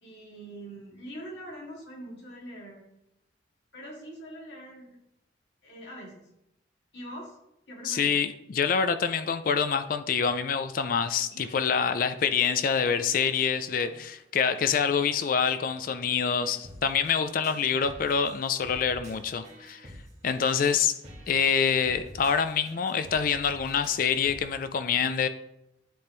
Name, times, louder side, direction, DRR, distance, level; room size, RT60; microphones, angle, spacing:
voice 1, 0.0-2.9 3.7-5.0 5.6-6.3 6.9-7.4 7.7-8.1 11.3-11.5, right 1 dB, 80° left, -3 dB, 2.3 m, -43 dB
voice 2, 7.8-19.9 20.2-21.0 21.3-25.3, left 6 dB, 50° left, 11 dB, 0.4 m, -26 dB
sound 1, 10.7-11.1 11.4-12.0 12.2-12.7 13.0-13.5 13.8-14.1 14.6-15.1 15.4-15.7 16.2-24.4, equal, 40° right, 1.7 m, -49 dB
10.5 x 3.5 x 3.3 m, 0.83 s
head